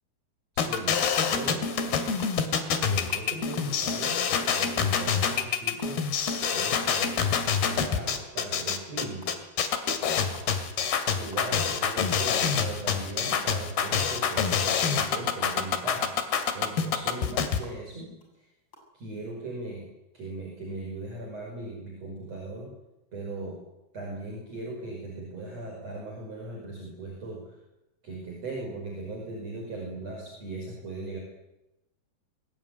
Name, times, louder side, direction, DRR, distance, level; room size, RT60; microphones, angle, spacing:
voice 1, 0.5-1.0 1.3-2.1 2.7-6.0 6.5-7.2 7.6-9.3 10.0-10.3 11.1-16.1 16.5-18.5 18.9-19.9 20.1-22.8 23.1-23.6 23.9-27.6 28.0-31.2, right 2 dB, 40° right, -1 dB, 6.6 m, -38 dB
sound 1, 0.6-17.6, left 7 dB, 70° left, 4.3 m, -26 dB
sound 2, 2.2-2.3 2.7-2.8 3.1-5.9 6.3-6.5 6.7-8.4 8.7-8.9 9.2-9.4 9.7-9.9 10.2-11.0 11.3-13.5 13.9-17.8 18.2-18.3 18.7-18.8, left 1 dB, 25° left, 7.8 m, -50 dB
26.0 x 21.5 x 9.5 m, 0.93 s
omnidirectional pair, 4.8 m